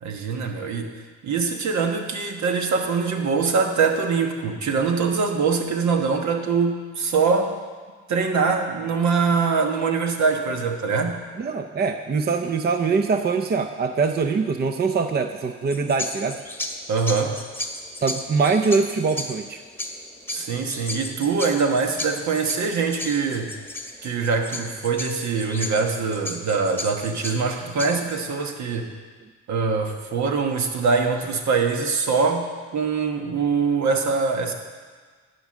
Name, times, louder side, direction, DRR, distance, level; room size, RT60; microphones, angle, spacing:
voice 1, 0.0-0.9 1.2-7.5 8.1-11.2 16.9-17.4 20.3-23.5 24.0-28.9 29.5-34.5, right 5 dB, 65° right, 4 dB, 1.3 m, -23 dB
voice 2, 11.4-16.4 18.0-19.6, right 4 dB, 35° right, 7 dB, 0.6 m, -23 dB
sound 1, 15.7-28.3, left 1 dB, 5° left, 1.2 m, -35 dB
11.5 x 5.2 x 7.4 m, 1.5 s
cardioid pair, 90°, 30 cm